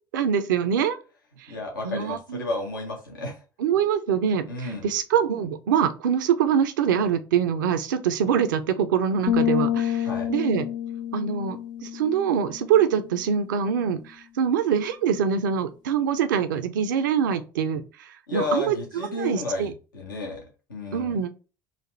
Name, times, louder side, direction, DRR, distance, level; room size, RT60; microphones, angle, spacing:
voice 1, 0.1-1.0 1.8-2.5 3.6-10.7 11.1-17.8 18.3-19.7 20.9-21.3, right 8 dB, 70° right, 10 dB, 0.5 m, -24 dB
voice 2, 1.5-3.4 4.5-4.9 10.0-10.3 18.3-20.4 20.7-21.2, left 2 dB, 80° left, 0 dB, 0.8 m, -32 dB
sound 1, 9.3-13.0, left 10 dB, 40° left, 0.4 m, -28 dB
4.1 x 2.5 x 3.1 m, 0.32 s
figure-of-eight pair, 60°, 11 cm